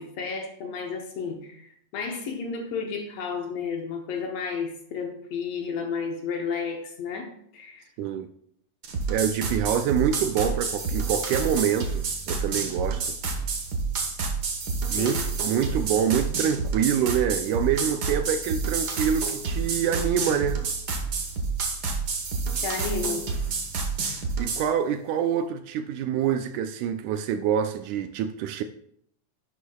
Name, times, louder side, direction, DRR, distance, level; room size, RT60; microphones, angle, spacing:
voice 1, 0.0-7.8 14.9-15.3 22.5-23.3, left 5 dB, 65° left, 1.8 m, -32 dB
voice 2, 8.0-8.3 9.1-13.1 14.9-15.2 15.4-20.6 24.4-28.6, right 8 dB, 80° right, 1.9 m, -26 dB
sound 1, 8.8-24.7, right 4 dB, 65° right, 1.0 m, -29 dB
11.0 x 9.6 x 2.3 m
omnidirectional pair, 3.6 m